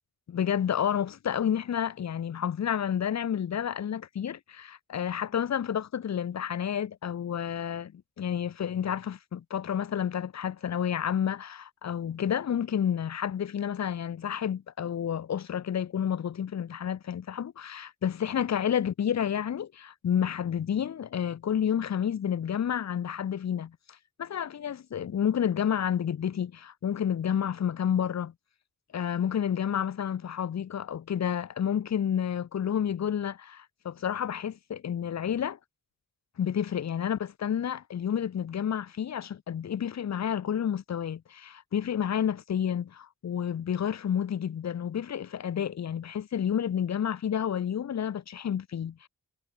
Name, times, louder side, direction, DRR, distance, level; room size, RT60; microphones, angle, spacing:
voice 1, 0.3-23.8 24.2-28.3 28.9-35.6 36.4-49.1, left 9 dB, 50° left, 0.6 m, -30 dB
wide cardioid pair, 90°, 36 cm